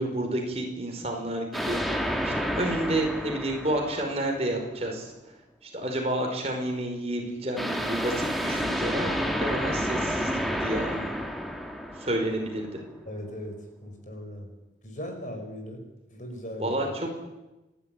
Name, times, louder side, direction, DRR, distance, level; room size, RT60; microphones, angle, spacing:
voice 1, 0.0-1.8 2.2-5.1 5.6-11.2 12.0-12.8 16.6-17.1, right 1 dB, 35° right, 2 dB, 5.0 m, -30 dB
sound 1, 1.5-4.7 7.6-12.7, equal, ahead, 1.9 m, -30 dB
voice 2, 13.1-14.5 14.8-15.8 16.1-16.9, equal, 45° left, 4 dB, 5.5 m, -39 dB
29.5 x 12.5 x 9.2 m, 1.0 s
head